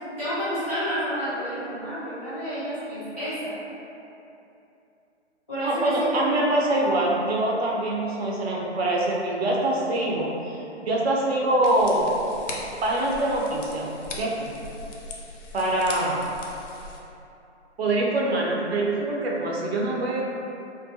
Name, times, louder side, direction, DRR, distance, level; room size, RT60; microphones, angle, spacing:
voice 1, 0.2-3.5 5.5-6.4, equal, 10° left, -15 dB, 0.4 m, -30 dB
voice 2, 5.6-12.2 12.8-14.5 15.5-16.3 17.8-20.2, right 1 dB, 65° right, -3 dB, 0.5 m, -24 dB
sound 1, 11.6-17.0, left 2 dB, 90° left, 0.5 m, -40 dB
2.3 x 2.1 x 2.6 m, 2.9 s
hypercardioid pair, 145°, 35 cm